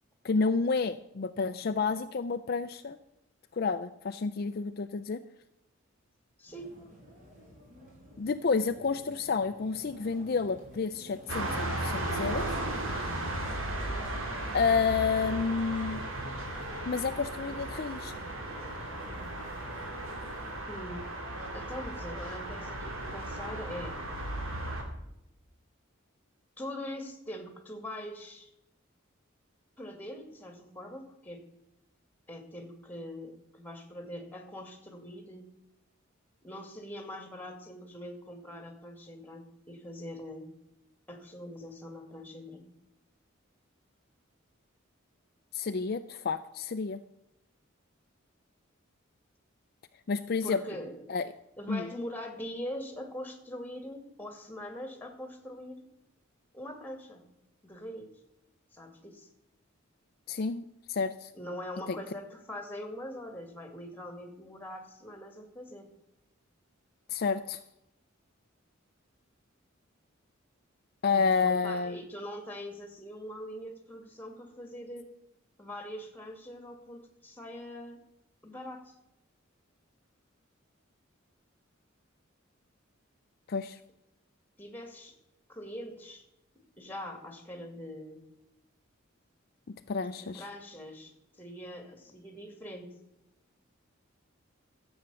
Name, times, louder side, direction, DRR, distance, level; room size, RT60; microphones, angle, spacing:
voice 1, 0.2-3.0 3.5-5.2 8.2-12.6 14.5-16.0 16.9-18.1 45.5-47.0 50.1-50.6 51.1-51.2 51.7-51.9 60.3-60.6 60.9-61.3 61.9-62.0 67.1-67.6 71.0-72.0 83.5-83.8 89.7-90.4, left 5 dB, 50° left, 9 dB, 0.5 m, -30 dB
voice 2, 6.4-6.7 20.7-21.1 21.5-24.0 26.6-28.5 29.8-31.4 32.3-35.5 36.4-40.5 41.1-42.6 50.4-51.0 51.6-55.8 56.5-57.2 57.6-58.1 58.7-59.3 61.3-65.9 71.1-75.1 75.6-78.0 78.4-78.9 84.6-85.2 85.5-86.2 86.8-88.2 90.2-91.1 91.4-92.9, left 1 dB, 10° left, 5 dB, 2.2 m, -42 dB
sound 1, 6.5-20.5, equal, 40° right, 4.7 m, -51 dB
sound 2, 11.3-24.8, right 1 dB, 85° right, 2.7 m, -36 dB
13.0 x 8.0 x 6.9 m, 0.87 s
head